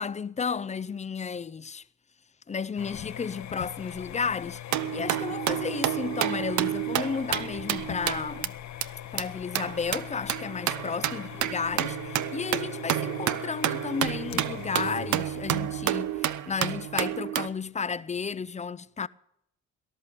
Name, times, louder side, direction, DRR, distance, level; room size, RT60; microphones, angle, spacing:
voice 1, 0.0-1.8 2.5-8.6 9.1-19.1, left 5 dB, 25° left, 0.5 m, -33 dB
sound 1, 2.8-17.3, left 11 dB, 65° left, 1.0 m, -42 dB
sound 2, 4.7-8.5 8.8-8.9 9.2-9.3 9.5-17.5, right 12 dB, 75° right, 0.8 m, -30 dB
19.0 x 11.0 x 6.9 m
cardioid pair, 90°, 30 cm